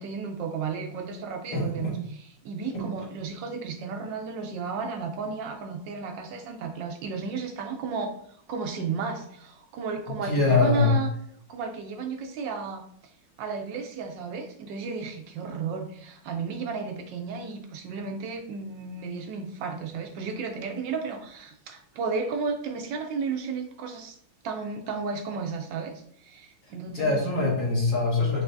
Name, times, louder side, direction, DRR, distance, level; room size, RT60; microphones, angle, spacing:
voice 1, 0.0-8.1 8.5-11.1 11.5-12.8 13.4-24.2 24.4-25.9 26.2-27.3, right 5 dB, 75° right, 4 dB, 1.2 m, -33 dB
voice 2, 1.5-1.9 2.7-2.8 10.3-10.9 26.9-28.4, left 3 dB, 45° left, -4 dB, 1.4 m, -23 dB
5.4 x 3.1 x 2.6 m, 0.65 s
omnidirectional pair, 2.1 m